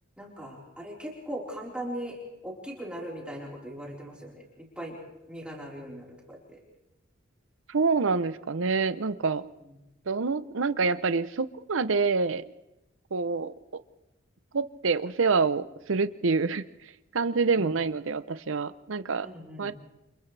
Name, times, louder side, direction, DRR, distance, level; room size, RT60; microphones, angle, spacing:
voice 1, 0.2-2.2 2.4-5.0 5.3-6.6 17.6-17.7 19.2-19.7, equal, 5° right, -4 dB, 4.3 m, -39 dB
voice 2, 7.7-9.4 10.1-12.4 13.1-13.5 14.5-16.6 17.1-19.3 19.6-19.7, right 4 dB, 75° right, 13 dB, 0.7 m, -26 dB
29.0 x 28.0 x 3.4 m, 0.95 s
head